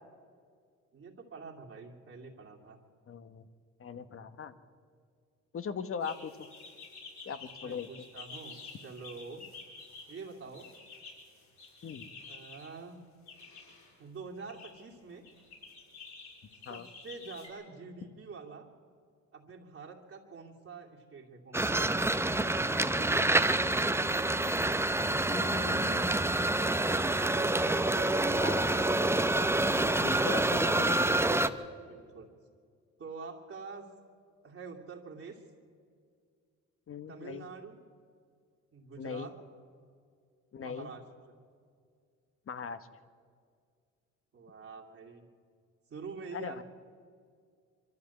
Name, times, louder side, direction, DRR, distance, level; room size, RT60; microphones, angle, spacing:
voice 1, 0.9-2.8 7.6-9.4 10.1-10.7 12.3-13.0 14.0-15.3 16.7-18.7 19.3-22.3 22.8-24.1 27.3-28.9 31.9-32.3 33.0-33.9 34.4-35.4 37.1-37.8 38.7-39.4 40.6-41.0 44.3-45.3 45.9-46.6, right 4 dB, 45° right, -1 dB, 2.6 m, -46 dB
voice 2, 3.1-3.4 3.8-4.5 5.5-6.5 7.2-7.9 11.8-12.1 16.6-16.9 25.3-26.1 28.3-28.6 30.0-31.1 36.9-37.5 39.0-39.3 40.5-40.9 42.5-42.8 46.3-46.6, left 6 dB, 45° left, 12 dB, 1.2 m, -39 dB
sound 1, 6.0-12.7 13.3-13.9 14.4-14.7 15.2-17.5, left 4 dB, 65° left, 6.5 m, -50 dB
sound 2, 21.5-31.5, right 2 dB, 10° right, 0.8 m, -27 dB
23.5 x 13.0 x 8.3 m, 2.2 s
cardioid pair, 90°, 30 cm